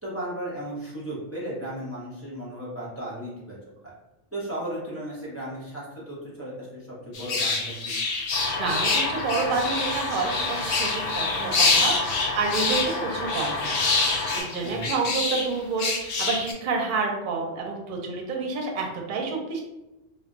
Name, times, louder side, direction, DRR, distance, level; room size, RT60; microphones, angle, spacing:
voice 1, 0.0-3.6 4.3-8.0 14.6-15.0, right 1 dB, 15° right, -7 dB, 0.6 m, -35 dB
sound 1, 7.1-15.5 15.8-16.5, left 3 dB, 75° left, 0.3 m, -26 dB
sound 2, 8.3-14.4, left 3 dB, 90° left, 1.0 m, -31 dB
voice 2, 8.6-13.9 14.3-19.6, right 4 dB, 55° right, 1 dB, 0.6 m, -29 dB
2.2 x 2.1 x 3.7 m, 0.98 s
omnidirectional pair, 1.2 m